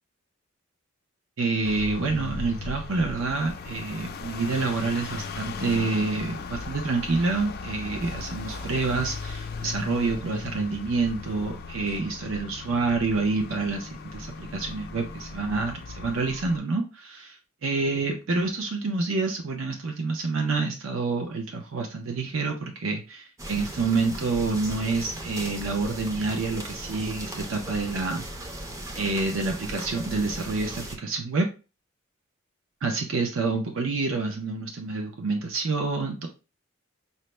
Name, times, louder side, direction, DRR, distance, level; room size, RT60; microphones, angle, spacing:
voice 1, 1.4-17.3 17.6-28.6 29.0-31.5 32.8-36.3, right 3 dB, 70° right, 3 dB, 0.5 m, -28 dB
sound 1, 1.6-16.6, left 4 dB, 50° left, 0.4 m, -37 dB
sound 2, 5.6-6.2 7.2-7.3 7.9-8.0 8.5-9.0, right 1 dB, 90° right, 2.3 m, -47 dB
sound 3, 23.4-31.0, right 1 dB, 15° right, 0.5 m, -37 dB
5.4 x 2.0 x 3.1 m, 0.33 s
head